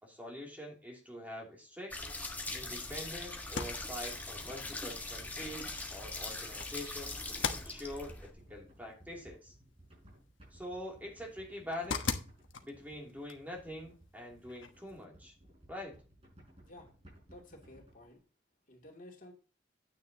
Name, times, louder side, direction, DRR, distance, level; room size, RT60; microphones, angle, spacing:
voice 1, 0.0-2.0 2.5-9.5 10.5-12.2 12.6-15.3 15.7-16.0, left 1 dB, 10° right, -1 dB, 2.7 m, -45 dB
sound 1, 1.9-8.3, left 2 dB, 10° left, 1.4 m, -41 dB
sound 2, 8.1-15.0, left 5 dB, 80° left, 1.2 m, -44 dB
sound 3, 8.1-18.2, right 1 dB, 30° right, 5.7 m, -59 dB
voice 2, 17.3-18.2 18.7-19.3, left 1 dB, 45° left, 0 dB, 2.6 m, -53 dB
9.4 x 9.3 x 2.8 m, 0.35 s
head